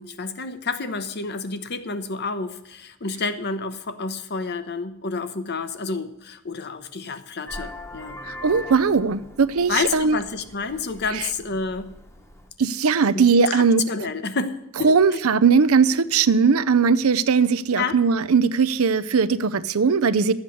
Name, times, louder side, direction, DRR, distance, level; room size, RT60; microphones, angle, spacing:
voice 1, 0.0-8.2 9.7-11.9 13.1-15.0 17.8-18.0, left 4 dB, 50° left, 0.9 m, -29 dB
Vehicle horn car horn honking, 7.5-12.5, left 1 dB, 15° left, 1.1 m, -41 dB
voice 2, 8.2-10.2 11.1-11.3 12.6-13.8 14.8-20.3, right 5 dB, 85° right, 0.6 m, -19 dB
12.0 x 8.1 x 6.8 m
head